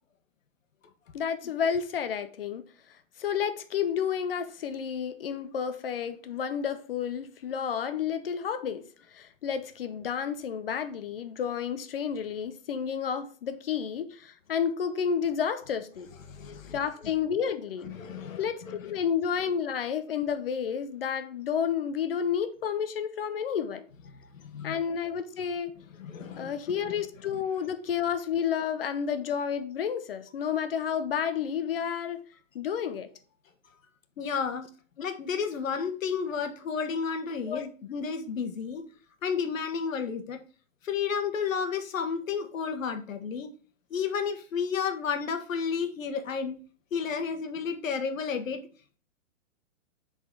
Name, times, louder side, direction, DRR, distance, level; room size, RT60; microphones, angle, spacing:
voice 1, 1.1-2.6 3.2-8.8 9.1-16.1 16.7-17.9 18.4-23.9 24.6-25.7 26.4-32.2 32.5-33.1 37.5-37.7, left 7 dB, 45° left, 0.6 m, -31 dB
voice 2, 16.3-17.1 17.8-19.0 24.1-24.8 26.0-26.5 27.3-27.4 34.2-34.6 35.0-38.8 39.2-40.4 40.8-43.5 43.9-46.5 46.9-48.6, left 6 dB, 80° left, 1.3 m, -32 dB
6.0 x 4.1 x 4.5 m
hypercardioid pair, 165°, 39 cm